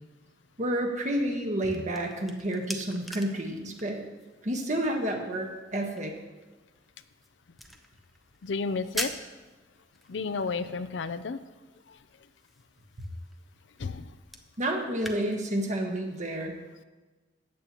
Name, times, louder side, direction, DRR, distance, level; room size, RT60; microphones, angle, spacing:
voice 1, 0.6-4.0 4.4-6.1 14.6-16.5, right 1 dB, 45° right, 2 dB, 1.4 m, -30 dB
sound 1, 1.5-15.2, equal, ahead, 0.7 m, -45 dB
voice 2, 8.4-9.1 10.1-11.4 11.9-12.0 13.8-14.1, left 4 dB, 80° left, 12 dB, 0.5 m, -32 dB
14.5 x 8.6 x 3.0 m, 1.2 s
head